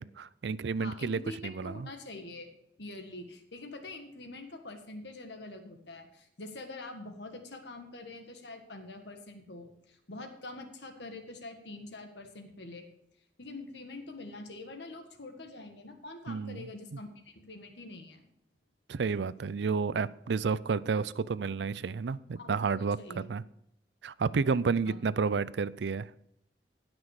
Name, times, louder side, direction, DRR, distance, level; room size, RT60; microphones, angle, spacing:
voice 1, 0.0-1.9 16.3-16.7 18.9-23.4 24.0-26.1, right 5 dB, 75° right, 18 dB, 0.4 m, -31 dB
voice 2, 0.8-1.4 1.6-2.5 2.8-12.9 13.4-18.3 22.4-23.3 24.8-25.0, left 2 dB, 75° left, 5 dB, 1.7 m, -45 dB
17.0 x 6.1 x 4.9 m, 0.79 s
head